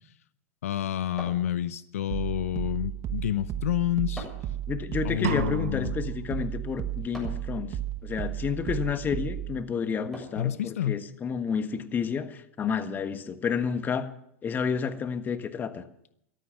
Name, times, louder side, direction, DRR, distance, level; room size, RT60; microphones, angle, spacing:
voice 1, 0.6-4.3 5.0-5.9 10.4-11.0, left 12 dB, 80° left, 15 dB, 0.7 m, -29 dB
sound 1, 1.2-2.1 4.1-4.6 7.1-7.5 10.1-10.6, left 1 dB, 5° left, 7.6 m, -43 dB
sound 2, 2.1-9.6, right 12 dB, 40° right, 1.1 m, -34 dB
voice 2, 4.7-7.8 8.0-14.1 14.4-15.8, left 6 dB, 25° left, 9 dB, 1.5 m, -30 dB
sound 3, 5.2-6.2, right 12 dB, 75° right, 0.8 m, -33 dB
14.5 x 12.5 x 7.1 m, 0.74 s
hypercardioid pair, 110°, 8 cm